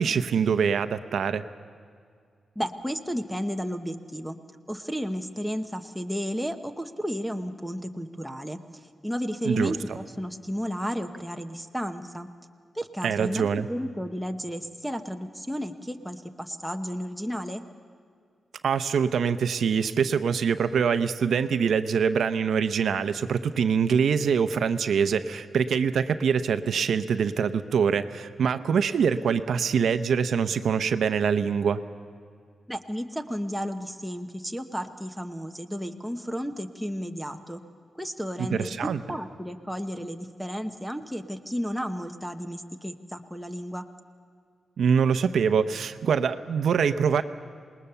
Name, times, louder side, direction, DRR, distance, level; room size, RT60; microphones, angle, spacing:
voice 1, 0.0-1.4 9.4-9.8 13.0-13.7 18.6-31.8 38.4-39.0 44.8-47.2, right 6 dB, 65° right, 10 dB, 0.8 m, -24 dB
voice 2, 2.6-4.4 4.7-8.6 9.0-12.3 12.7-17.6 32.7-37.6 38.0-38.7 39.1-43.9, equal, ahead, 4 dB, 0.9 m, -33 dB
27.0 x 20.0 x 6.8 m, 2.2 s
wide cardioid pair, 180°, 0 cm